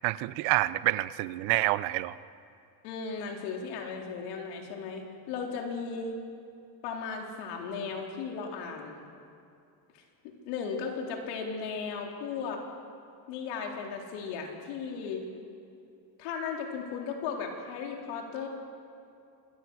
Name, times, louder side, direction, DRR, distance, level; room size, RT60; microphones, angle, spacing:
voice 1, 0.0-2.1, right 18 dB, 70° right, 15 dB, 0.9 m, -27 dB
voice 2, 2.8-6.2 6.8-9.0 9.9-12.6 13.3-15.2 16.2-18.5, left 5 dB, 85° left, 1 dB, 4.2 m, -36 dB
26.0 x 21.5 x 6.4 m, 2.6 s
cardioid pair, 165°, 49 cm